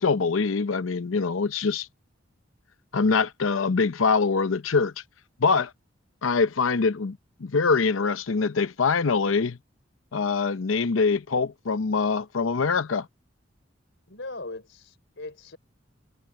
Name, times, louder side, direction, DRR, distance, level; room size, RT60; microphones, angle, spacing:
voice 1, 0.0-1.9 2.9-4.9 5.4-5.7 6.2-9.6 10.1-13.1, left 4 dB, 90° left, 0.7 m, -24 dB
voice 2, 14.1-15.6, left 2 dB, 65° left, 4.7 m, -39 dB
head